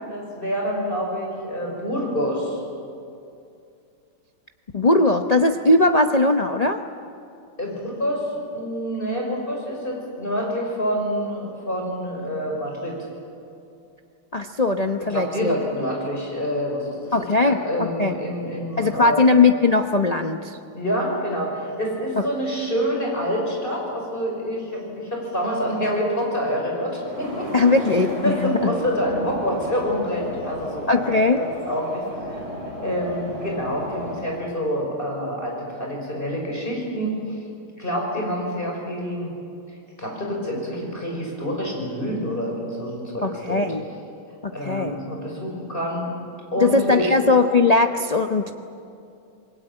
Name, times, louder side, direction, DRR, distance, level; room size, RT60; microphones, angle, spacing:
voice 1, 0.1-2.6 7.6-8.3 8.5-13.0 15.1-17.1 17.4-19.2 20.7-27.5 28.2-32.4 32.8-37.4 37.8-39.3 40.0-43.6 44.5-46.1 46.5-47.1, equal, 25° left, -1 dB, 6.2 m, -27 dB
voice 2, 4.7-6.8 14.3-15.5 17.1-18.2 18.8-20.6 22.2-22.3 27.5-28.7 30.9-31.4 43.2-43.8 44.4-45.0 46.6-48.5, left 3 dB, 85° left, 5 dB, 0.3 m, -19 dB
sound 1, 26.9-34.2, equal, 80° right, 8.1 m, -33 dB
27.5 x 21.5 x 8.9 m, 2.5 s
omnidirectional pair, 2.3 m